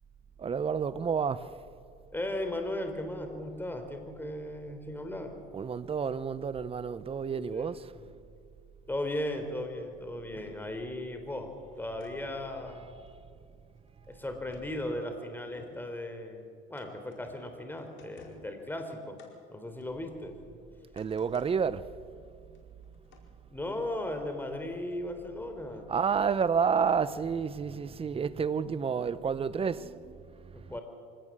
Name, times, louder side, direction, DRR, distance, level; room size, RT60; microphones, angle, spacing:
voice 1, 0.4-1.5 5.5-7.9 20.9-21.9 25.9-30.7, right 6 dB, 25° right, 1.0 m, -30 dB
voice 2, 2.1-5.3 7.6-8.1 8.9-11.5 11.8-13.0 14.1-19.2 19.5-20.4 23.5-25.9 30.5-30.8, left 1 dB, 10° left, 3.9 m, -37 dB
sound 1, 11.5-12.1 12.6-12.7 13.1-13.2 13.7-14.7 15.1-15.2 15.4-15.9 16.8-17.5 17.8-18.6 19.2-19.3 19.8-20.5 20.8-21.5 21.9-22.0 22.4-23.2 24.2-24.5 24.9-25.0, left 4 dB, 60° left, 4.8 m, -59 dB
24.5 x 18.0 x 7.6 m
supercardioid pair, 85°, 21 cm